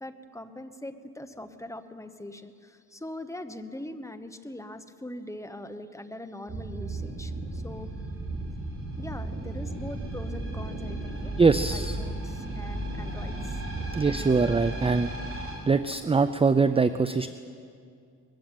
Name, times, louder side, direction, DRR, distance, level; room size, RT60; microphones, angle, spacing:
voice 1, 0.0-7.9 9.0-13.6, left 1 dB, 10° left, 8 dB, 1.1 m, -42 dB
sound 1, 6.5-15.5, right 1 dB, 40° right, 4.8 m, -34 dB
voice 2, 11.4-12.0 13.9-15.1 15.7-17.3, right 4 dB, 15° right, 12 dB, 0.5 m, -23 dB
21.0 x 15.5 x 9.2 m, 2.3 s
cardioid pair, 115°, 33 cm